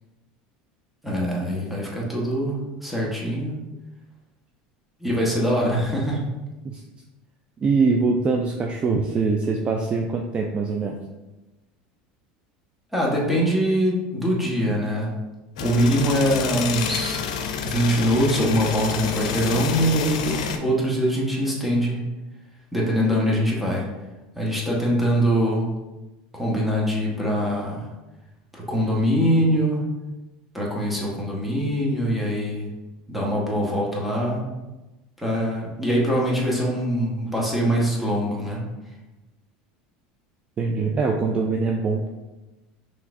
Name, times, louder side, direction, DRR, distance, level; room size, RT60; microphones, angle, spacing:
voice 1, 1.0-2.6 2.8-3.6 5.0-6.2 12.9-15.1 15.6-17.2 17.6-22.0 22.7-23.9 24.4-25.7 26.3-27.9 28.5-29.8 30.5-32.7 33.1-34.5 35.2-38.6, equal, 5° right, -4 dB, 1.2 m, -23 dB
voice 2, 7.6-11.0 40.6-42.0, right 4 dB, 30° right, 2 dB, 0.4 m, -23 dB
sound 1, 15.6-20.6, left 6 dB, 90° left, 0.5 m, -28 dB
5.6 x 3.1 x 2.6 m, 1.1 s
supercardioid pair, 120°, 4 cm